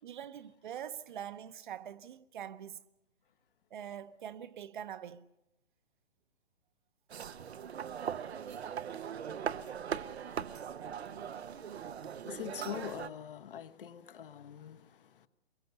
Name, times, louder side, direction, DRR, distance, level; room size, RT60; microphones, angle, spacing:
voice 1, 0.0-2.8 3.7-5.3 8.9-9.1, right 9 dB, 50° right, 0.9 m, -44 dB
sound 1, 7.1-13.1, right 8 dB, 85° right, 0.9 m, -40 dB
voice 2, 12.2-15.3, left 10 dB, 55° left, 1.1 m, -44 dB
23.0 x 22.5 x 6.8 m
hypercardioid pair, 155°, 31 cm